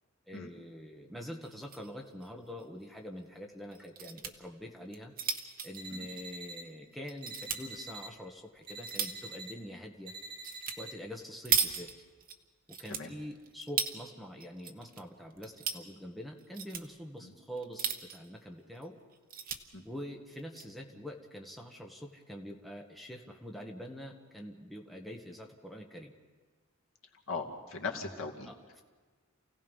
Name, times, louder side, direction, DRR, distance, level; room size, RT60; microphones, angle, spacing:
voice 1, 0.3-5.1 5.6-10.1 10.8-11.9 12.7-19.0 19.8-26.1 27.9-28.0 28.5-28.8, equal, ahead, 1 dB, 1.4 m, -45 dB
sound 1, 1.4-1.9 2.2-2.3 2.6-2.7 3.7-4.3 4.8-6.7 7.1-7.6 8.3-9.3 10.4-10.8 11.1-12.4 12.7-14.0 14.4-15.0 15.3-15.8 16.4-16.9 17.6-18.3 18.8-18.9 19.1-19.6 20.3-20.6, right 7 dB, 45° right, 1.2 m, -35 dB
sound 2, 5.8-6.6 7.2-8.1 8.7-9.5 10.1-10.9, right 2 dB, 25° right, 3.2 m, -45 dB
voice 2, 27.3-28.5, left 4 dB, 70° left, 1 dB, 2.3 m, -39 dB
28.5 x 17.0 x 5.5 m, 1.4 s
head